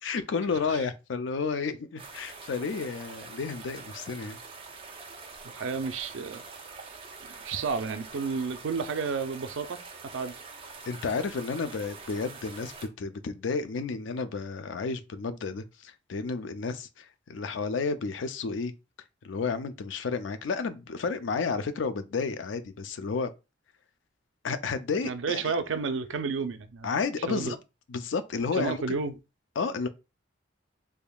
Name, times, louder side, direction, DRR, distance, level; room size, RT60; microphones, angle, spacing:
voice 1, 0.0-4.4 10.9-12.7 13.0-18.7 19.2-23.3 24.4-25.5 26.8-27.6 27.9-29.0 29.6-29.9, left 4 dB, 80° left, 0.4 m, -31 dB
sound 1, 2.0-12.9, right 4 dB, 30° right, 0.6 m, -45 dB
voice 2, 5.5-6.4 6.9-9.8 10.1-10.3 25.0-26.9 27.3-27.5 28.6-29.2, right 5 dB, 85° right, 0.5 m, -31 dB
3.5 x 3.3 x 2.3 m
head